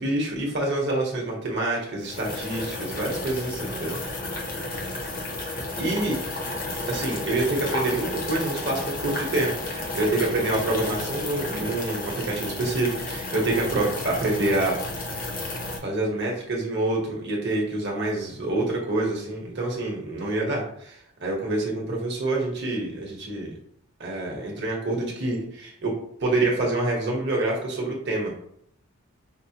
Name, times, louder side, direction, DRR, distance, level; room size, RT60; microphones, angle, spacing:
voice 1, 0.0-4.0 5.8-6.2 6.9-14.7 15.8-23.5 24.0-25.9 26.2-28.4, right 2 dB, 50° right, -2 dB, 1.0 m, -27 dB
sound 1, 2.0-15.8, left 2 dB, 40° left, 0.7 m, -32 dB
5.3 x 2.1 x 2.8 m, 0.70 s
head